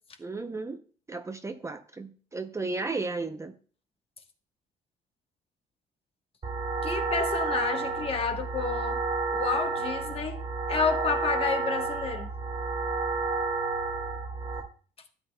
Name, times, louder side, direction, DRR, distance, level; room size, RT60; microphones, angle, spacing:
voice 1, 0.2-0.8 1.1-3.5, right 3 dB, 15° right, 0.6 m, -34 dB
Sinus Aditive, 6.4-14.6, right 4 dB, 35° right, 1.8 m, -31 dB
voice 2, 6.8-9.0 9.3-10.4 10.7-12.3, left 5 dB, 35° left, 1.2 m, -30 dB
12.5 x 8.9 x 2.2 m
cardioid pair, 110°, 17 cm